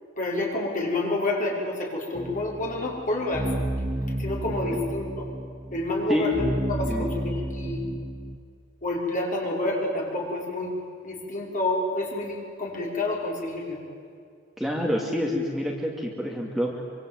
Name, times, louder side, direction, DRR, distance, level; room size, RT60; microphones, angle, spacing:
voice 1, 0.2-3.5 4.2-5.3 5.7-7.8 8.8-10.7 11.0-13.8, left 2 dB, 40° left, -1 dB, 5.9 m, -28 dB
sound 1, 2.1-8.4, right 1 dB, 20° right, 0.9 m, -31 dB
voice 2, 14.6-16.8, left 1 dB, ahead, -1 dB, 2.6 m, -27 dB
26.0 x 24.5 x 9.4 m, 2.3 s
head